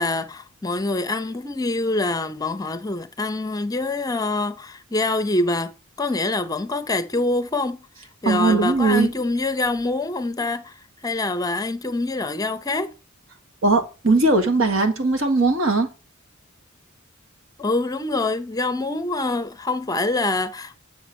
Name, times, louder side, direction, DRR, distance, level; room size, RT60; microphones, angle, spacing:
voice 1, 0.0-5.7 6.0-12.9 17.6-20.8, left 2 dB, 15° left, 0.6 m, -25 dB
voice 2, 8.2-9.1 13.6-15.9, right 3 dB, 65° right, 1.6 m, -19 dB
7.4 x 6.4 x 6.2 m
head